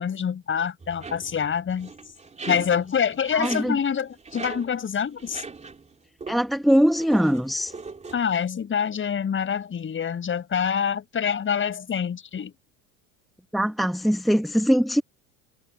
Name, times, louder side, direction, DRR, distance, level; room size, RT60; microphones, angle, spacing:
voice 1, 0.0-1.9 2.5-5.4 8.1-12.5, left 7 dB, 30° left, 6.4 m, -26 dB
sound 1, 0.8-5.9 6.2-6.5 6.9-8.2, right 4 dB, 15° right, 3.4 m, -40 dB
voice 2, 3.3-3.8 6.3-7.7 13.5-15.0, equal, ahead, 0.9 m, -21 dB
supercardioid pair, 100°, 39 cm